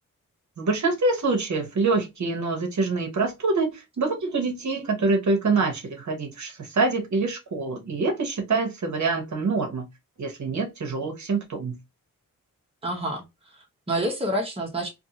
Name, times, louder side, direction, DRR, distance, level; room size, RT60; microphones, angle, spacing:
voice 1, 0.6-9.9 10.2-11.8, right 3 dB, 55° right, 0.9 m, -25 dB
voice 2, 12.8-14.9, right 1 dB, 15° right, 0.8 m, -29 dB
2.6 x 2.4 x 2.7 m
wide cardioid pair, 95°, 34 cm